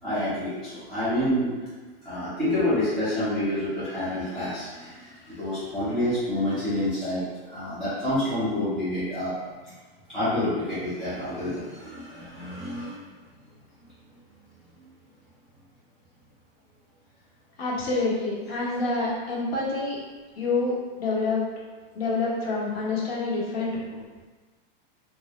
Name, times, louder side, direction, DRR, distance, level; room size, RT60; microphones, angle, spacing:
voice 1, 0.0-1.5 2.0-9.4 9.7-9.8 10.1-13.0, left 1 dB, ahead, -15 dB, 0.4 m, -28 dB
voice 2, 17.6-20.0 20.4-20.7 21.0-21.4 21.9-23.8, left 3 dB, 90° left, -6 dB, 1.0 m, -27 dB
2.1 x 2.0 x 2.9 m, 1.3 s
supercardioid pair, 175°, 29 cm